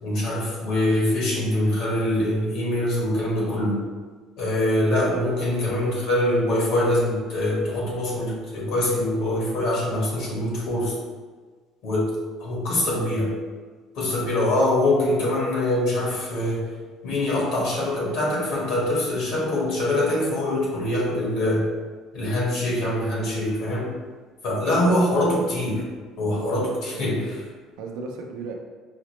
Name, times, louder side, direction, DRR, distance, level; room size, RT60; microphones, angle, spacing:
voice 1, 0.0-3.8 4.4-10.9 11.8-13.3 13.9-16.7 17.0-21.6 22.1-23.9 24.4-25.8 26.2-27.4, left 1 dB, 70° left, -4 dB, 1.3 m, -24 dB
voice 2, 26.3-27.3 27.8-28.5, right 4 dB, 85° right, 2 dB, 0.5 m, -36 dB
4.9 x 2.0 x 3.1 m, 1.4 s
cardioid pair, 125°, 0 cm